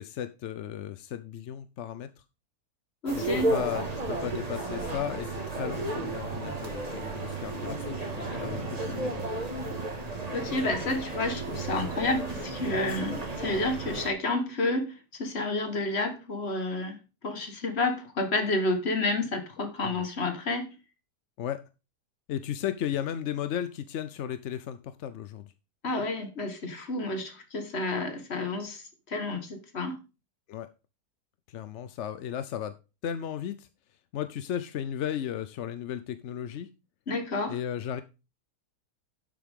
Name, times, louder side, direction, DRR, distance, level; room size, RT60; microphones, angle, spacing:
voice 1, 0.0-2.1 3.1-9.3 10.9-11.0 19.8-20.1 21.4-21.6 22.3-25.5 30.5-30.7 31.5-32.7 33.0-33.7 34.1-36.7 37.5-38.0, left 10 dB, 65° left, 0.7 m, -35 dB
voice 2, 3.0-3.5 10.3-20.7 25.8-30.0 37.1-37.6, left 2 dB, 40° left, 1.7 m, -30 dB
sound 1, 3.1-14.1, right 2 dB, 25° right, 1.7 m, -33 dB
11.5 x 7.4 x 3.6 m
omnidirectional pair, 1.7 m